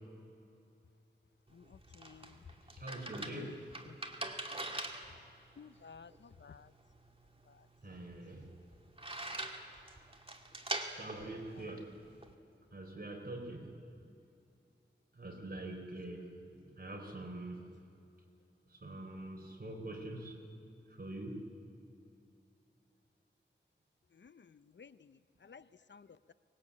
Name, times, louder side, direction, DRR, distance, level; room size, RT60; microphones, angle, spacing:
voice 1, 1.5-2.5 3.2-4.0 5.6-6.7 7.4-7.7 11.4-11.7 24.1-26.3, left 6 dB, 70° left, 15 dB, 0.6 m, -55 dB
sound 1, 1.5-12.3, right 2 dB, 30° right, 2.1 m, -44 dB
voice 2, 2.6-3.6 7.8-8.5 10.9-11.9 12.7-13.7 15.1-17.6 18.7-20.4 20.9-21.4, right 2 dB, 50° right, 2 dB, 4.1 m, -44 dB
24.5 x 20.5 x 8.5 m, 2.6 s
wide cardioid pair, 70°, 19 cm